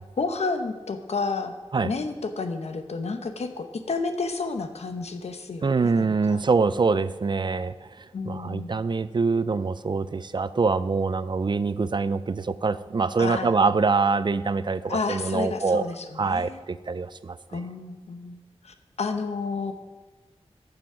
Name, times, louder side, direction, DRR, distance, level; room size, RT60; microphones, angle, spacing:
voice 1, 0.2-1.5 1.8-6.4 8.1-8.7 13.2-13.5 14.9-16.6 17.5-18.4 18.6-19.7, left 4 dB, 80° left, 8 dB, 0.8 m, -31 dB
voice 2, 5.6-15.9 16.2-17.6, right 4 dB, 45° right, 15 dB, 0.4 m, -25 dB
9.3 x 6.9 x 6.0 m, 1.3 s
wide cardioid pair, 85°, 11 cm